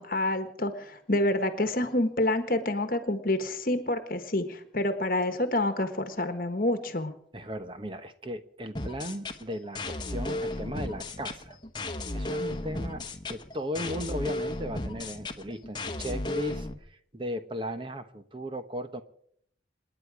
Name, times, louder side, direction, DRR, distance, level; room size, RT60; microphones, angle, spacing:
voice 1, 0.0-7.1, left 1 dB, 50° left, 8 dB, 1.3 m, -28 dB
voice 2, 7.3-11.6 12.1-19.0, equal, 30° right, 9 dB, 1.0 m, -36 dB
sound 1, 8.7-16.7, left 2 dB, 25° left, 1.1 m, -34 dB
28.0 x 9.9 x 4.9 m, 0.66 s
head